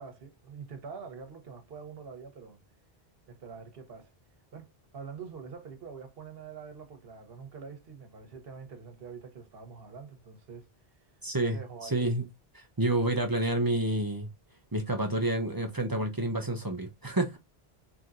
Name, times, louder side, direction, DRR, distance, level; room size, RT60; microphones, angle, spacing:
voice 1, 0.0-2.6 3.3-4.1 4.5-10.7 11.4-12.1, right 5 dB, 65° right, 1.1 m, -45 dB
voice 2, 11.2-11.6 11.8-12.3 12.5-14.3 14.7-17.4, right 1 dB, 25° right, 0.6 m, -29 dB
3.1 x 2.8 x 2.4 m
omnidirectional pair, 1.1 m